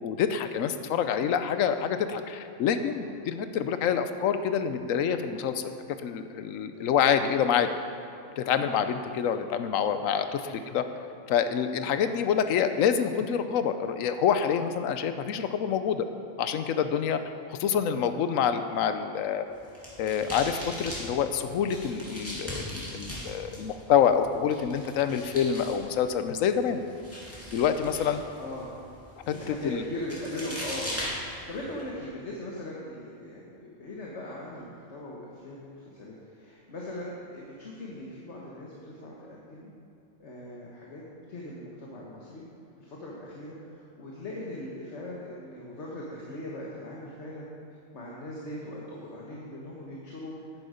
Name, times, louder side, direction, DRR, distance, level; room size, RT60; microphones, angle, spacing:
voice 1, 0.0-5.7 6.0-7.7 8.4-10.4 10.7-10.8 11.3-16.0 16.4-17.2 17.5-19.5 20.0-26.8 27.5-28.2 29.3-29.8, left 8 dB, 80° left, 9 dB, 1.1 m, -27 dB
voice 2, 2.8-3.1 6.7-6.9 8.2-8.5 10.4-10.7 17.9-18.1 28.4-28.7 29.3-39.7 40.2-41.0 41.3-42.4 42.8-47.5 47.9-50.3, left 1 dB, 60° left, -4 dB, 1.6 m, -40 dB
sound 1, 19.5-31.8, equal, 10° left, 2.5 m, -40 dB
10.5 x 9.8 x 5.1 m, 2.5 s
omnidirectional pair, 1.4 m